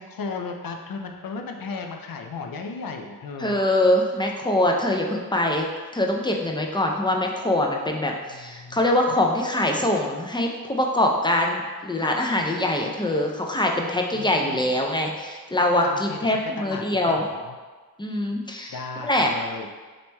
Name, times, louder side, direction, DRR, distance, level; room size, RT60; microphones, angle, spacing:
voice 1, 0.0-3.6 8.3-9.2 14.1-14.7 15.8-17.6 18.7-19.7, left 4 dB, 70° left, 3 dB, 0.5 m, -36 dB
voice 2, 3.4-5.7 5.9-17.2 18.0-19.3, left 1 dB, 15° left, 1 dB, 0.4 m, -23 dB
4.0 x 3.0 x 2.2 m, 1.4 s
cardioid pair, 45°, 36 cm